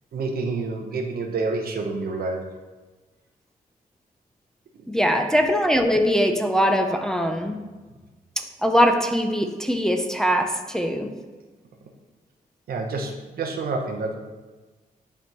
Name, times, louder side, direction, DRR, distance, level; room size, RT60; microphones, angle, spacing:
voice 1, 0.1-2.4 12.7-14.1, right 3 dB, 75° right, 3 dB, 0.9 m, -28 dB
voice 2, 4.9-7.6 8.4-11.1, equal, 5° left, 4 dB, 0.5 m, -22 dB
10.5 x 3.5 x 3.0 m, 1.3 s
cardioid pair, 110°, 16 cm